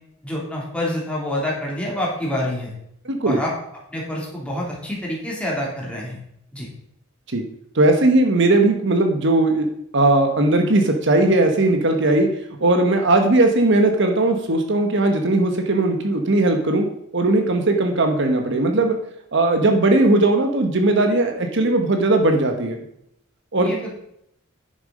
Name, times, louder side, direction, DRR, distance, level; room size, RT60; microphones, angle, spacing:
voice 1, 0.2-2.7 3.2-3.5 3.9-6.2 6.5-6.7 23.6-24.0, left 1 dB, 5° left, -4 dB, 2.9 m, -27 dB
voice 2, 3.0-3.4 7.3-7.4 7.7-9.7 9.9-12.3 12.6-16.9 17.1-19.0 19.3-22.8 23.5-23.7, right 2 dB, 60° right, 5 dB, 1.2 m, -18 dB
9.7 x 6.8 x 5.2 m, 0.75 s
head